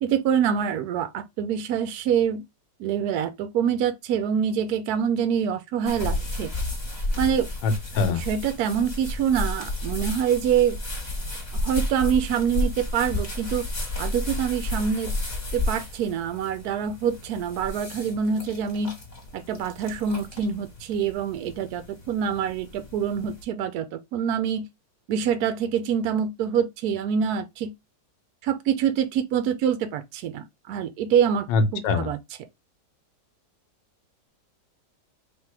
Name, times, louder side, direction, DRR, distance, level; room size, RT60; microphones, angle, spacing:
voice 1, 0.0-2.4 2.8-6.5 7.2-7.5 8.1-10.8 11.6-13.6 14.0-15.1 15.5-18.9 19.3-24.7 25.1-27.7 28.4-31.5 31.7-32.2, right 8 dB, 70° right, 1.0 m, -25 dB
sound 1, 5.9-23.4, left 1 dB, 30° left, 1.1 m, -32 dB
voice 2, 7.6-8.2 31.5-32.1, left 4 dB, 90° left, 1.4 m, -23 dB
3.5 x 2.8 x 4.6 m
omnidirectional pair, 1.9 m